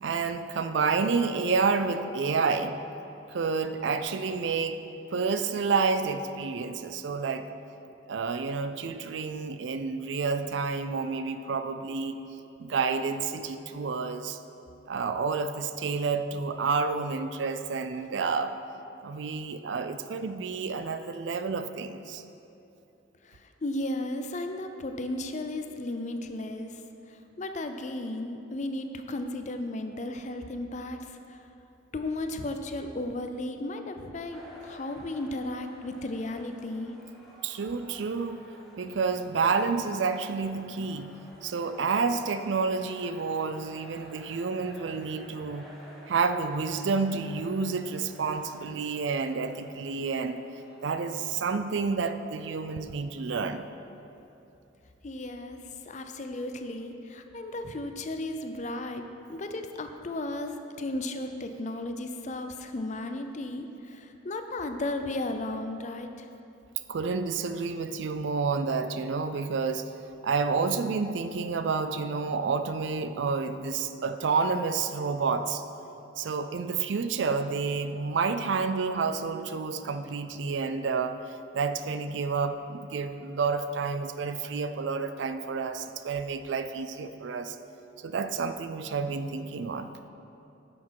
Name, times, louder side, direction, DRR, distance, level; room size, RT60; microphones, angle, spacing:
voice 1, 0.0-2.8 3.3-4.8 5.1-7.5 8.1-12.2 12.6-14.4 14.9-18.6 19.0-22.2 37.4-38.4 38.8-41.1 41.4-45.7 46.1-50.4 50.8-53.6 66.9-69.9 70.2-75.6 76.2-87.6 88.0-90.0, right 4 dB, 70° right, 10 dB, 0.4 m, -29 dB
voice 2, 23.2-26.8 27.1-31.4 31.9-36.9 55.0-59.0 59.3-66.3, left 2 dB, 40° left, 7 dB, 0.5 m, -35 dB
sound 1, 34.3-51.9, equal, ahead, 1.2 m, -52 dB
9.7 x 6.1 x 4.7 m, 2.8 s
head